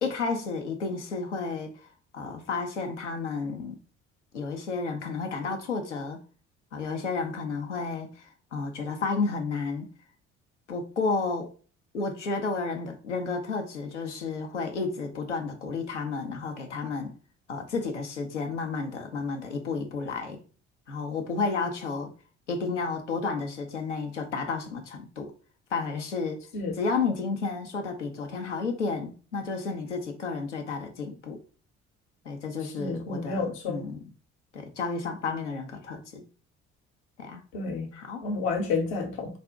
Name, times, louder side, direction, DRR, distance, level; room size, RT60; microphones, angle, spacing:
voice 1, 0.0-1.7 2.1-3.8 4.3-6.2 6.7-9.9 10.7-11.5 11.9-17.1 17.5-20.4 20.9-22.1 22.5-25.3 25.7-26.4 26.7-31.4 32.2-34.1 34.5-36.3 37.2-37.4 37.9-38.2, left 4 dB, 85° left, 0.7 m, -31 dB
voice 2, 32.8-33.8 37.5-37.9 38.2-39.3, left 4 dB, 70° left, 1.0 m, -30 dB
4.1 x 2.5 x 3.6 m
figure-of-eight pair, 45°, 35 cm